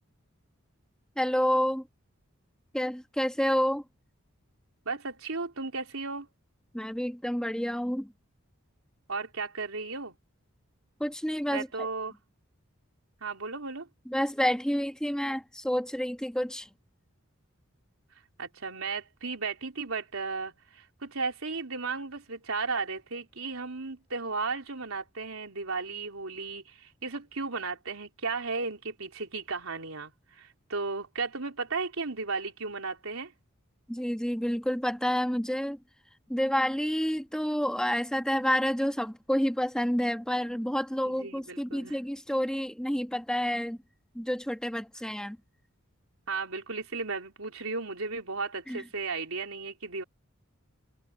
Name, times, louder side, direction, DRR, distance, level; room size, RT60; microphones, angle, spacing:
voice 1, 1.2-1.9 2.7-3.8 6.7-8.1 11.0-11.7 14.1-16.7 33.9-35.8 36.3-43.8 44.1-45.4 48.7-48.8, equal, 5° left, 1.5 m, -29 dB
voice 2, 4.9-6.3 9.1-10.1 11.5-12.2 13.2-13.9 18.4-33.3 41.1-42.0 46.3-50.0, right 4 dB, 80° right, 3.6 m, -35 dB
head